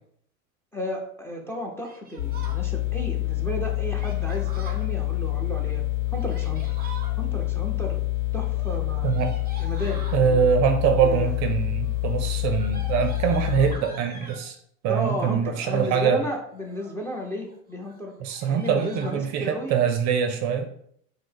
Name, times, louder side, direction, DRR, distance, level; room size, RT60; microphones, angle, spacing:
voice 1, 0.7-5.9 6.1-6.6 7.2-8.0 8.3-9.1 9.6-10.5 10.9-11.4 14.9-18.1 18.5-19.8, equal, 5° left, 0 dB, 0.6 m, -33 dB
Yell, 1.8-2.6 4.0-4.9 6.0-7.1 8.4-10.2 11.1-11.5 11.8-14.5 15.4-16.0 16.5-17.1 17.4-17.6 17.8-18.0 18.3-19.2, right 2 dB, 20° right, 1.1 m, -45 dB
sound 1, 2.2-13.7, left 18 dB, 85° left, 1.0 m, -27 dB
voice 2, 9.0-9.4 10.1-14.6 14.8-16.2 18.2-20.7, right 7 dB, 40° right, 7 dB, 0.5 m, -23 dB
4.9 x 2.1 x 3.8 m, 0.67 s
hypercardioid pair, 105°, 42 cm